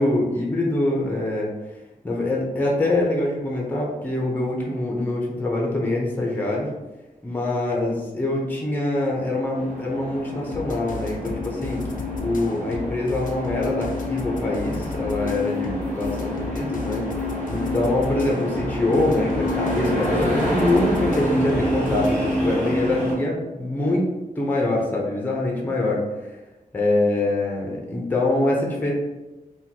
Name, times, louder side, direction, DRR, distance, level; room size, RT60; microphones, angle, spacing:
voice 1, 0.0-1.5 2.0-6.7 7.2-11.9 12.2-16.1 16.5-17.1 17.5-26.0 26.7-28.9, left 2 dB, 10° left, -2 dB, 0.5 m, -24 dB
sound 1, 9.5-23.1, equal, 50° right, 1.1 m, -27 dB
sound 2, 10.5-22.2, left 4 dB, 65° left, 0.4 m, -36 dB
3.6 x 2.2 x 2.8 m, 1.1 s
wide cardioid pair, 155°, 15 cm